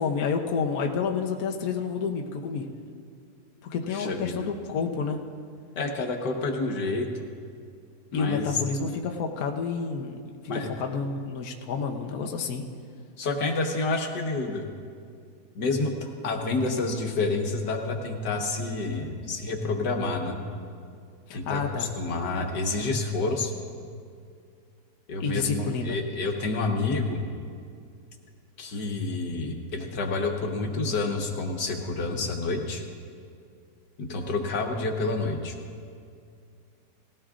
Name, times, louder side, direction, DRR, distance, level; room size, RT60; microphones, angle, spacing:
voice 1, 0.0-2.7 3.6-5.2 8.1-10.1 10.7-12.6 21.3-21.9 25.2-26.0, left 5 dB, 65° left, 2 dB, 1.3 m, -29 dB
voice 2, 3.9-4.5 5.8-7.1 8.1-8.6 10.5-10.7 13.2-14.7 15.6-20.4 21.3-23.5 25.1-27.2 28.6-32.8 34.0-35.5, left 3 dB, 85° left, 2 dB, 1.9 m, -29 dB
19.0 x 16.0 x 2.5 m, 2.3 s
omnidirectional pair, 1.8 m